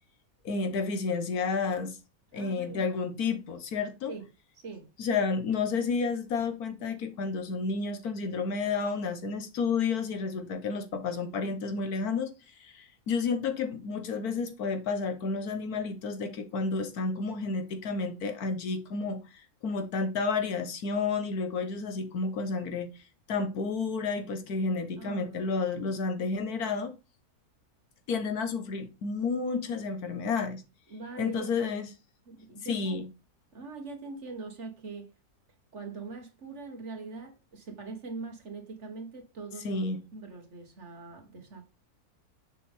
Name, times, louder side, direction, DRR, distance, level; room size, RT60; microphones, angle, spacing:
voice 1, 0.4-2.0 2.3-4.1 5.0-12.3 12.6-19.2 19.6-22.9 23.3-26.9 28.1-30.6 31.2-31.9 32.7-33.1 39.6-40.0, left 4 dB, 80° left, 1.6 m, -31 dB
voice 2, 2.3-2.9 4.1-4.3 4.6-4.9 25.0-25.6 30.9-31.5 32.3-33.0 33.5-35.1 35.7-39.8 40.1-41.6, right 3 dB, 50° right, 1.8 m, -42 dB
6.7 x 5.3 x 3.6 m
omnidirectional pair, 1.6 m